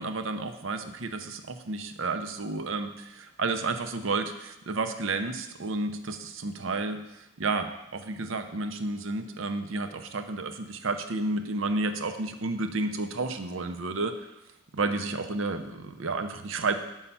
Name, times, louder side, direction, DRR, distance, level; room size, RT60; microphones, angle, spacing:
voice 1, 0.0-14.3 14.7-16.7, right 3 dB, 70° right, 8 dB, 0.7 m, -31 dB
7.2 x 5.5 x 5.5 m, 0.91 s
head